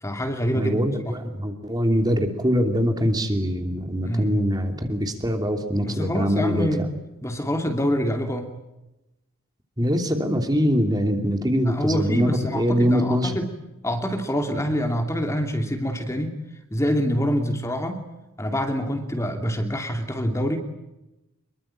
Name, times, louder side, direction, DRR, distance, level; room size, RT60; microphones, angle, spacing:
voice 1, 0.0-1.2 4.1-4.3 5.8-6.8 7.2-8.5 11.7-13.5 13.8-16.4 16.7-18.0 18.4-20.6, equal, 15° left, 5 dB, 2.7 m, -26 dB
voice 2, 0.5-6.7 9.8-13.4, equal, 20° right, 5 dB, 3.0 m, -23 dB
26.0 x 23.0 x 9.0 m, 0.96 s
head